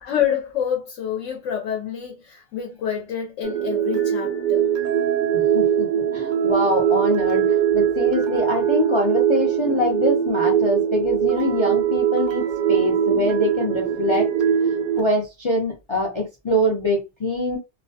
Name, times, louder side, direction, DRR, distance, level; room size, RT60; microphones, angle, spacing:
voice 1, 0.0-4.7, left 9 dB, 75° left, 0.9 m, -27 dB
sound 1, 3.4-15.0, right 9 dB, 75° right, 0.4 m, -21 dB
voice 2, 5.3-14.3 15.0-17.6, left 1 dB, 45° left, 0.3 m, -24 dB
2.4 x 2.1 x 2.6 m
omnidirectional pair, 1.3 m